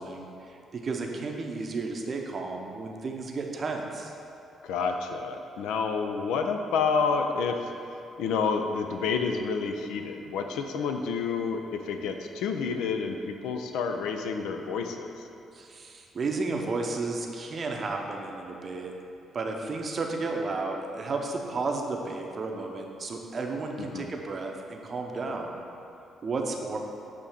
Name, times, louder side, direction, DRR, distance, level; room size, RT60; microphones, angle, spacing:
voice 1, 0.0-4.1 15.5-18.9 19.3-25.6 26.2-26.8, right 3 dB, 40° right, 2 dB, 0.6 m, -33 dB
voice 2, 4.6-7.7 8.2-15.3 23.9-24.1, left 5 dB, 65° left, 5 dB, 0.3 m, -29 dB
8.2 x 2.8 x 4.6 m, 2.7 s
figure-of-eight pair, 40°, 0 cm